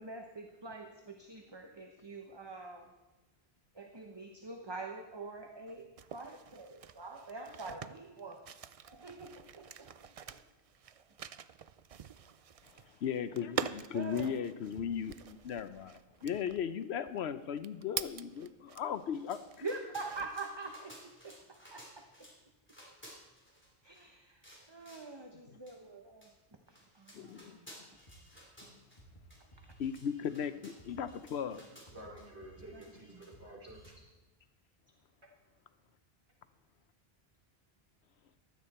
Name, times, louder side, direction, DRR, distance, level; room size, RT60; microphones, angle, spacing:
voice 1, 0.0-2.9 3.7-8.4 8.9-10.4 13.9-14.4 19.6-21.4 21.7-22.3 23.8-24.4 24.7-26.3 26.7-27.7 32.7-32.8, right 3 dB, 25° right, 3 dB, 1.0 m, -45 dB
sound 1, 5.7-19.1 19.5-20.6, right 8 dB, 50° right, 0.4 m, -45 dB
voice 2, 12.7-19.6 27.1-27.6 29.8-31.6, left 8 dB, 80° left, 12 dB, 0.9 m, -37 dB
sound 2, 18.9-22.4 22.7-24.1 24.4-25.1 25.7-25.8 26.2-26.3 26.7-29.0 29.3-29.4 29.7-32.3 32.8-33.5 33.8-34.0, equal, 10° left, 3.0 m, -56 dB
sound 3, 27.9-28.3 28.6-28.7 29.0-31.2 31.5-33.9, right 1 dB, 30° left, 2.2 m, -58 dB
voice 3, 31.9-33.9, right 1 dB, 80° right, -1 dB, 3.7 m, -50 dB
15.5 x 12.5 x 4.3 m, 1.2 s
omnidirectional pair, 1.1 m